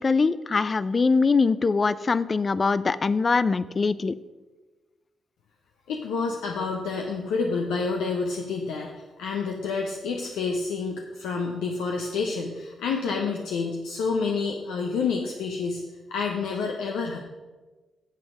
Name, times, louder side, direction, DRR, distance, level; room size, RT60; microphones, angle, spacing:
voice 1, 0.0-4.1, left 4 dB, 40° left, 16 dB, 0.4 m, -22 dB
voice 2, 5.9-8.9 9.2-15.8 16.1-17.2, left 4 dB, 85° left, 1 dB, 0.8 m, -28 dB
8.3 x 7.8 x 5.0 m, 1.2 s
supercardioid pair, 50°, 0 cm